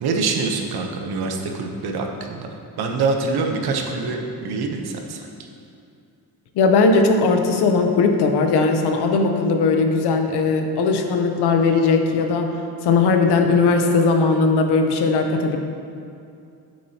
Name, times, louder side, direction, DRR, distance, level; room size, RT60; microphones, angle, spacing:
voice 1, 0.0-2.5 2.8-5.2, right 4 dB, 75° right, 2 dB, 1.0 m, -25 dB
voice 2, 6.6-12.5 12.8-15.6, left 4 dB, 90° left, 4 dB, 0.9 m, -18 dB
8.8 x 7.4 x 2.9 m, 2.5 s
cardioid pair, 140°, 39 cm